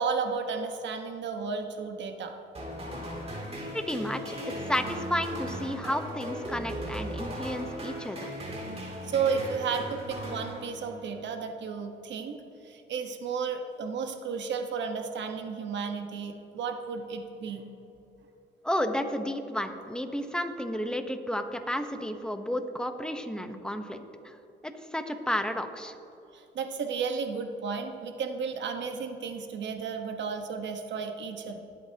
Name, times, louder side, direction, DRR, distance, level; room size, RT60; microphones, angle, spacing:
voice 1, 0.0-2.3 9.1-12.4 12.6-17.6 26.3-31.6, right 5 dB, 65° right, 5 dB, 1.3 m, -33 dB
sound 1, 2.5-11.1, equal, 30° right, 2.8 m, -37 dB
voice 2, 3.7-4.4 4.7-8.3 18.6-24.0 24.2-24.3 24.6-25.9, equal, 5° left, 7 dB, 1.0 m, -32 dB
21.0 x 8.3 x 2.9 m, 2.9 s
cardioid pair, 90°, 20 cm